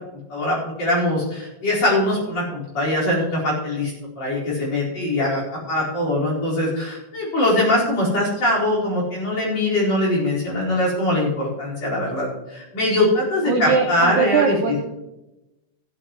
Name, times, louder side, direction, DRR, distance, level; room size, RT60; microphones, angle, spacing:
voice 1, 0.3-3.9 4.2-5.4 5.7-14.8, left 1 dB, 45° left, -6 dB, 5.6 m, -22 dB
voice 2, 13.5-14.8, right 5 dB, 70° right, 3 dB, 2.0 m, -21 dB
16.0 x 13.0 x 3.1 m, 0.95 s
omnidirectional pair, 4.2 m